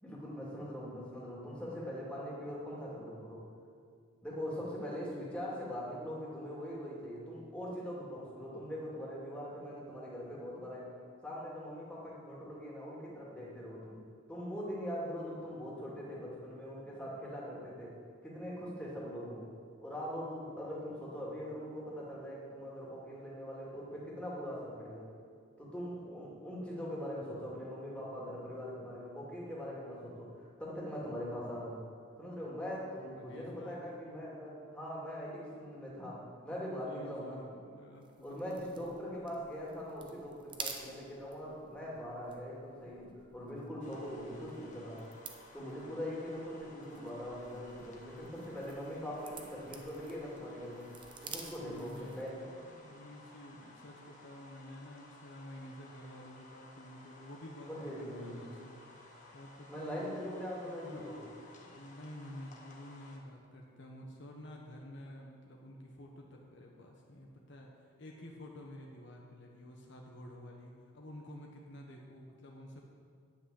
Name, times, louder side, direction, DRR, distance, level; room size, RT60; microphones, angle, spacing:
voice 1, 0.0-3.5 4.2-10.9 11.2-14.0 14.3-19.5 19.8-25.1 25.6-31.8 32.2-37.5 38.2-45.1 45.5-51.0 51.2-52.5 57.7-58.4 59.7-61.2, equal, 5° left, -6 dB, 2.5 m, -42 dB
voice 2, 33.1-33.9 35.5-35.6 36.8-39.0 48.5-48.9 51.6-60.0 60.8-72.8, left 1 dB, 60° left, 0 dB, 1.2 m, -51 dB
sound 1, 38.0-52.4, right 5 dB, 25° right, 0.9 m, -51 dB
sound 2, 43.8-63.2, left 2 dB, 35° left, 1.5 m, -57 dB
10.5 x 6.1 x 8.5 m, 2.2 s
head